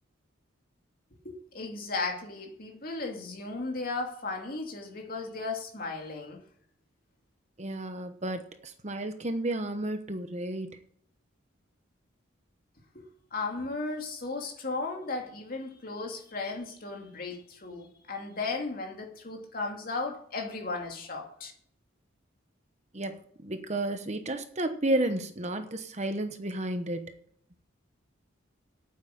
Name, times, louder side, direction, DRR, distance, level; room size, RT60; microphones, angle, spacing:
voice 1, 1.2-6.4 12.9-21.5, left 3 dB, 45° left, 1 dB, 2.6 m, -35 dB
voice 2, 7.6-10.8 22.9-27.1, right 1 dB, 35° right, 8 dB, 1.0 m, -32 dB
9.2 x 8.2 x 9.4 m, 0.63 s
head